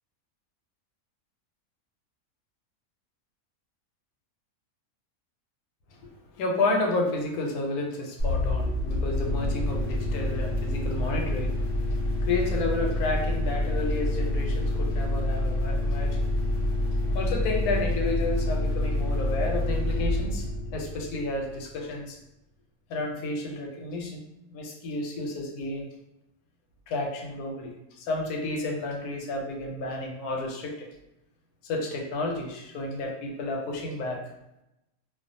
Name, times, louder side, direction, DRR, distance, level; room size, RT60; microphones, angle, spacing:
voice 1, 6.4-11.5 11.9-16.2 17.1-20.5 20.7-22.2 22.9-24.2 24.5-25.9 26.9-30.9 31.6-34.2, left 2 dB, 85° left, 1 dB, 1.1 m, -31 dB
sound 1, 8.2-21.7, left 1 dB, 50° left, 0.8 m, -27 dB
2.4 x 2.3 x 2.5 m, 0.90 s
omnidirectional pair, 1.6 m